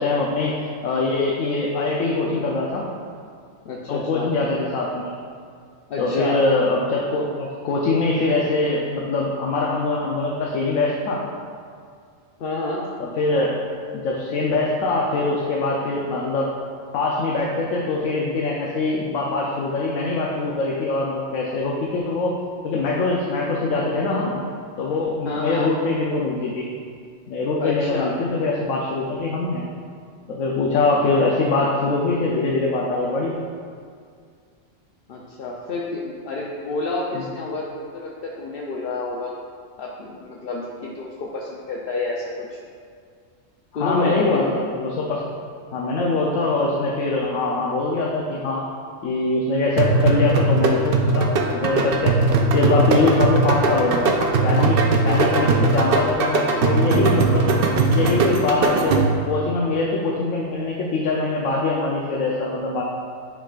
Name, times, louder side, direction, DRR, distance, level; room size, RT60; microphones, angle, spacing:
voice 1, 0.0-2.8 3.9-5.1 6.0-11.2 13.0-13.5 13.9-16.5 16.9-22.3 22.6-24.3 24.8-26.7 27.3-29.6 30.3-33.3 37.1-37.2 43.7-45.2 45.7-48.7 49.0-52.1 52.5-54.1 54.4-54.8 55.0-57.6 57.9-62.8, left 3 dB, 85° left, -3 dB, 1.1 m, -23 dB
voice 2, 3.6-4.3 5.9-6.4 12.4-12.9 25.2-25.7 27.6-28.1 35.1-39.4 39.8-42.6 43.7-44.5, left 3 dB, 55° left, -3 dB, 0.7 m, -29 dB
sound 1, 49.8-59.3, right 3 dB, 55° right, 0.6 m, -19 dB
9.9 x 4.7 x 2.4 m, 2.2 s
omnidirectional pair, 1.4 m